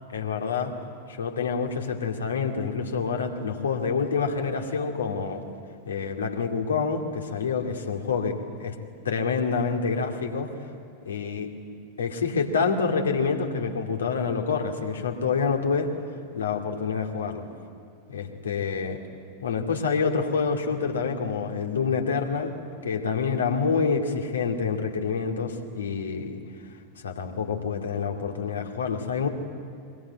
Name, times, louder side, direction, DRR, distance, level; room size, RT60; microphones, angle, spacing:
voice 1, 0.1-0.7 1.1-5.4 5.9-8.8 9.0-10.5 11.1-11.5 12.0-15.9 16.3-17.4 18.1-19.0 19.4-22.6 22.8-26.4 27.0-29.3, left 5 dB, 70° left, 3 dB, 2.5 m, -27 dB
23.0 x 22.0 x 9.7 m, 2.3 s
figure-of-eight pair, 90°, 0 cm